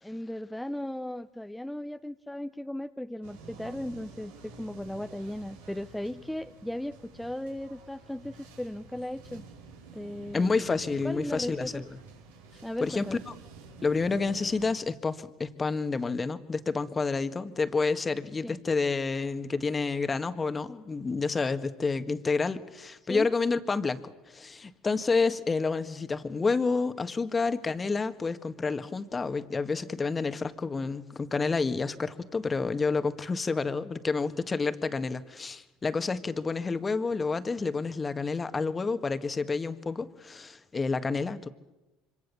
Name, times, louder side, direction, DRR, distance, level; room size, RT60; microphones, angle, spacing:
voice 1, 0.0-9.4 9.9-10.6 11.0-11.8 12.6-13.2 18.4-18.6 23.0-23.3, left 1 dB, 5° left, 8 dB, 0.8 m, -36 dB
sound 1, 3.2-14.7, right 4 dB, 85° right, 4.6 m, -49 dB
voice 2, 10.3-11.9 12.8-13.0 13.8-41.5, left 4 dB, 25° left, 10 dB, 1.7 m, -29 dB
26.0 x 25.0 x 7.0 m, 1.0 s
hypercardioid pair, 80°, 0 cm